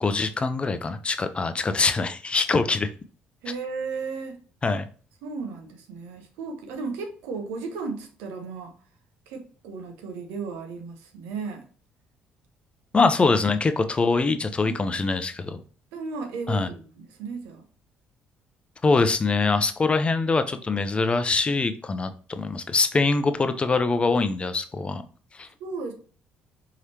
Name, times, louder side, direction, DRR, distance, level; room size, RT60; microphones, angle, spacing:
voice 1, 0.0-2.9 4.6-4.9 12.9-15.6 16.5-16.7 18.8-25.0 25.3-25.5, left 3 dB, 30° left, 0.5 m, -23 dB
voice 2, 3.4-4.4 5.2-8.7 9.3-11.6 12.9-13.1 14.6-15.1 15.9-17.6 25.6-25.9, right 4 dB, 85° right, 0.8 m, -35 dB
4.8 x 3.2 x 2.8 m
supercardioid pair, 75°, 4 cm